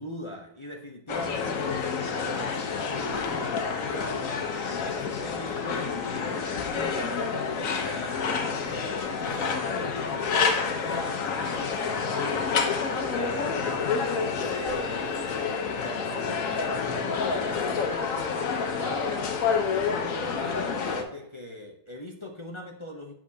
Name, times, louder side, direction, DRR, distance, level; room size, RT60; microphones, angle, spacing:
voice 1, 0.0-1.8 2.2-8.2 9.0-13.3 14.0-17.8 18.6-19.2 19.7-23.1, left 1 dB, 35° left, 1 dB, 0.4 m, -41 dB
sound 1, 1.1-21.0, left 5 dB, 55° left, 1.2 m, -28 dB
8.7 x 7.2 x 2.8 m, 0.75 s
omnidirectional pair, 1.9 m